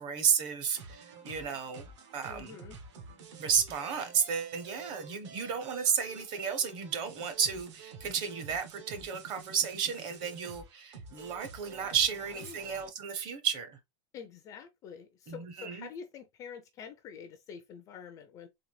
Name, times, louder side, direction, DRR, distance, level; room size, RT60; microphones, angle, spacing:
voice 1, 0.0-2.6 3.4-13.8 15.3-15.9, right 7 dB, 30° right, 0.7 m, -32 dB
sound 1, 0.7-12.9, right 5 dB, 70° right, 1.2 m, -50 dB
voice 2, 2.3-2.8 12.3-12.6 14.1-18.5, left 7 dB, 20° left, 0.3 m, -47 dB
3.9 x 2.8 x 3.2 m
supercardioid pair, 175°, 16 cm